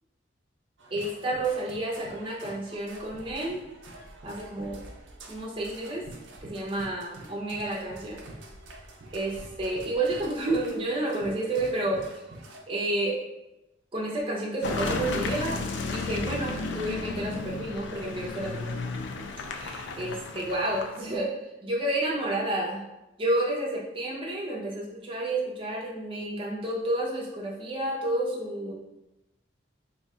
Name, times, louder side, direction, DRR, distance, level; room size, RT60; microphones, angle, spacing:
sound 1, 0.8-12.6, right 2 dB, 85° right, 0.5 m, -47 dB
voice 1, 0.9-3.6 4.2-4.8 5.3-6.1 6.4-8.2 9.1-12.3 12.7-13.2 13.9-15.6 15.9-18.7 19.5-22.8 23.2-28.7, right 1 dB, 30° right, -4 dB, 0.7 m, -30 dB
Car passing by / Engine, 14.6-21.2, left 3 dB, 75° left, 0.4 m, -33 dB
2.8 x 2.3 x 4.2 m, 0.95 s
head